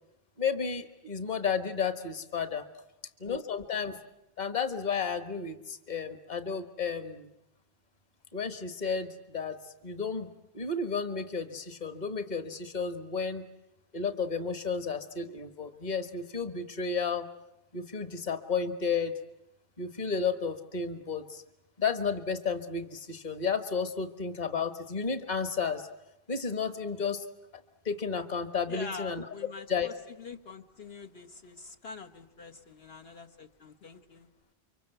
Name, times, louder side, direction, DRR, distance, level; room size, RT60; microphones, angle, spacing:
voice 1, 0.4-2.7 3.2-4.0 4.4-7.3 8.3-13.4 13.9-17.3 17.7-19.1 19.8-21.4 21.8-25.9 26.3-27.2 27.8-29.3 29.7-29.9, left 5 dB, 45° left, 9 dB, 1.6 m, -32 dB
voice 2, 28.7-34.3, left 4 dB, 80° left, 2 dB, 1.9 m, -45 dB
30.0 x 24.5 x 8.0 m, 0.89 s
omnidirectional pair, 1.0 m